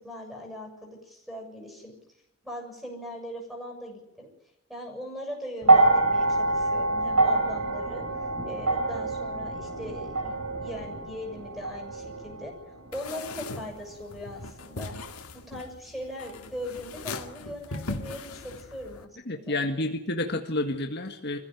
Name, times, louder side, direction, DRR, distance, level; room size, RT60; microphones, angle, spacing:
voice 1, 0.0-1.9 2.4-4.3 4.7-8.0 8.4-12.5 12.9-14.9 15.3-19.6, left 1 dB, ahead, -2 dB, 7.3 m, -40 dB
sound 1, 5.6-14.0 15.0-15.1, right 2 dB, 85° right, 5.3 m, -26 dB
sound 2, 12.9-19.0, left 3 dB, 85° left, 2.1 m, -39 dB
voice 2, 19.3-21.4, left 2 dB, 50° left, 4 dB, 1.7 m, -29 dB
25.0 x 15.5 x 9.3 m, 0.87 s
head